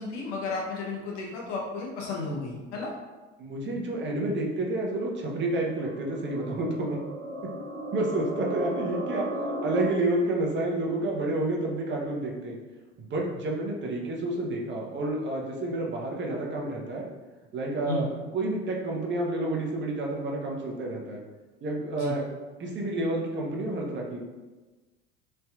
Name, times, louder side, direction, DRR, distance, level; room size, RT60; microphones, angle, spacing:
voice 1, 0.0-2.9 17.9-18.1 21.9-22.2, left 3 dB, 80° left, -2 dB, 0.9 m, -33 dB
voice 2, 3.4-7.0 7.9-9.3 9.6-12.6 13.0-17.1 17.5-21.2 21.6-22.3 22.6-24.2, right 2 dB, 30° right, -1 dB, 0.7 m, -29 dB
sound 1, 4.8-9.8, right 1 dB, 65° right, 1.1 m, -36 dB
3.2 x 2.7 x 2.3 m, 1.2 s
hypercardioid pair, 70°, 36 cm